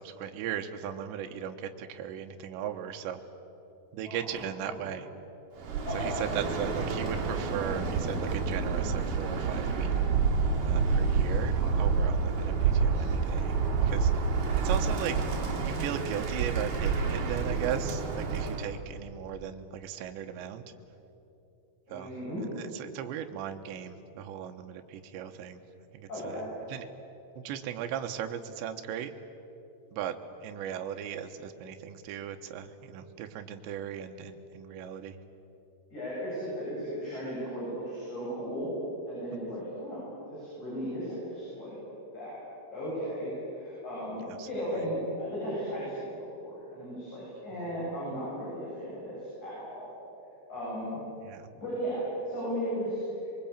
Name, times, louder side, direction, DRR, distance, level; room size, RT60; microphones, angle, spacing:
voice 1, 0.0-3.2 3.9-5.1 5.9-9.9 10.6-14.1 14.6-15.3 15.6-20.6 21.9-22.1 22.6-25.6 25.9-26.4 26.7-26.8 27.4-29.1 29.9-35.2 44.3-44.5 47.5-47.7 51.2-51.5, right 9 dB, 70° right, 6 dB, 3.1 m, -37 dB
voice 2, 4.0-4.8 5.9-6.7 21.9-22.4 26.1-26.5 35.9-38.7 39.1-40.0 40.3-41.8 42.1-42.4 42.7-46.1 46.4-49.9 50.5-51.0 51.6-53.0, equal, 35° left, -8 dB, 9.3 m, -36 dB
Bird, 5.6-18.7, right 5 dB, 45° right, 4.3 m, -28 dB
23.5 x 23.0 x 8.8 m, 3.0 s
omnidirectional pair, 5.8 m